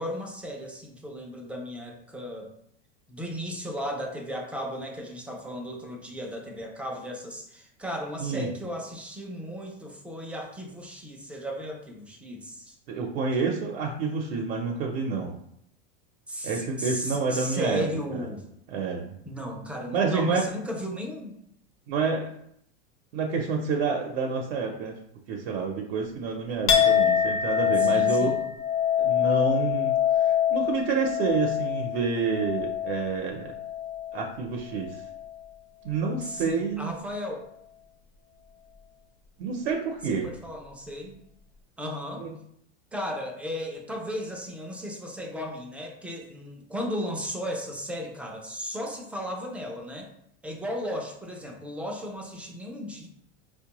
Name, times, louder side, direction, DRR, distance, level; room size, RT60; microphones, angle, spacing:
voice 1, 0.0-2.5 3.1-12.8 16.3-18.4 19.3-21.4 27.8-28.4 36.2-37.5 40.0-41.2 41.8-42.3 42.9-50.1 50.4-53.1, equal, 5° right, 0 dB, 0.3 m, -35 dB
voice 2, 12.9-15.4 16.4-17.9 18.7-19.1 19.9-20.4 21.9-22.3 23.1-25.0 25.3-28.3 29.0-33.5 34.1-35.0 35.8-37.0 39.4-40.3 42.2-42.3, right 5 dB, 75° right, 0 dB, 0.6 m, -28 dB
Chink clink, 26.7-34.4 34.7-35.4, left 9 dB, 50° left, 0.7 m, -25 dB
4.4 x 2.2 x 2.8 m, 0.71 s
supercardioid pair, 135°, 30 cm